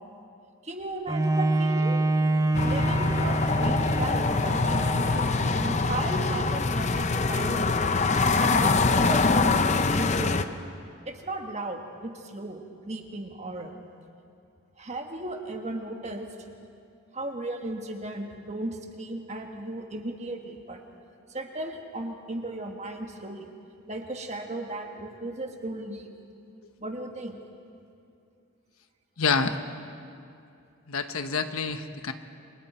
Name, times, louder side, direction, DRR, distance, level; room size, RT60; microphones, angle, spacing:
voice 1, 0.6-2.0 2.6-7.8 8.4-10.6 11.0-13.8 14.8-16.3 17.1-20.8 21.3-23.5 23.9-26.1 26.8-27.4, right 2 dB, 30° right, 3 dB, 1.6 m, -36 dB
Bowed string instrument, 1.1-6.7 7.3-7.4, right 2 dB, 15° right, 0.5 m, -27 dB
sound 1, 2.5-10.4, left 3 dB, 30° left, 0.6 m, -24 dB
voice 2, 29.2-29.6 30.9-32.1, left 5 dB, 80° left, 8 dB, 1.1 m, -27 dB
28.5 x 26.0 x 4.4 m, 2.5 s
head